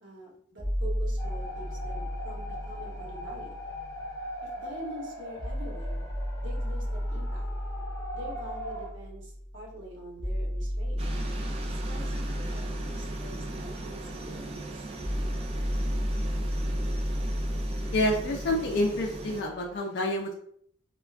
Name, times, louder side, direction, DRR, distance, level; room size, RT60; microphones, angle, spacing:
voice 1, 0.0-3.6 4.6-6.0 6.4-7.5 8.1-11.0 11.7-14.9, equal, 60° right, -2 dB, 0.9 m, -45 dB
sound 1, 0.6-4.6 5.4-19.4, equal, ahead, 0.8 m, -33 dB
sound 2, 1.2-8.9, equal, 20° left, 1.3 m, -41 dB
sound 3, 11.0-19.4, right 2 dB, 30° right, 0.3 m, -39 dB
voice 2, 17.9-20.3, left 1 dB, 55° left, 1 dB, 0.4 m, -28 dB
3.3 x 2.1 x 2.4 m, 0.65 s
head